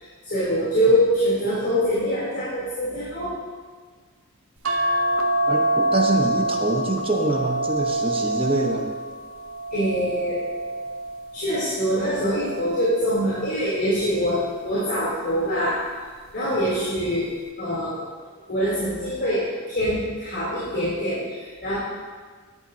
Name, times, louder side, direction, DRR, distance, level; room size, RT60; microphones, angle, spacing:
voice 1, 0.0-3.3 9.7-10.4 11.3-15.8 16.3-17.3 17.6-18.0 18.5-19.4 19.7-21.7, equal, 50° left, -10 dB, 3.4 m, -24 dB
sound 1, 4.6-11.3 11.9-13.3 14.5-15.0 15.3-15.4, right 1 dB, 60° right, 1.0 m, -26 dB
voice 2, 5.5-8.9, right 2 dB, 25° right, 1 dB, 1.1 m, -25 dB
13.5 x 10.5 x 2.9 m, 1.5 s
head